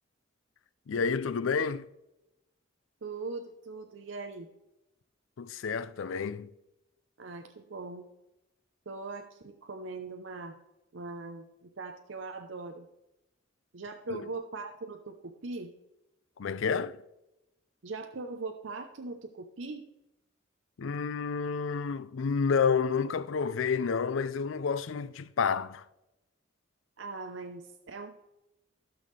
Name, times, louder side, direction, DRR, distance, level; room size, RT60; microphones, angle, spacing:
voice 1, 0.9-1.9 5.4-6.5 14.1-14.2 16.4-17.0 20.8-25.8, left 5 dB, 75° left, 0.4 m, -30 dB
voice 2, 3.0-4.5 7.2-8.0 8.9-10.6 10.9-12.9 13.7-15.7 17.8-19.8 27.0-28.1, right 3 dB, 70° right, 0.7 m, -40 dB
15.0 x 6.2 x 3.3 m
head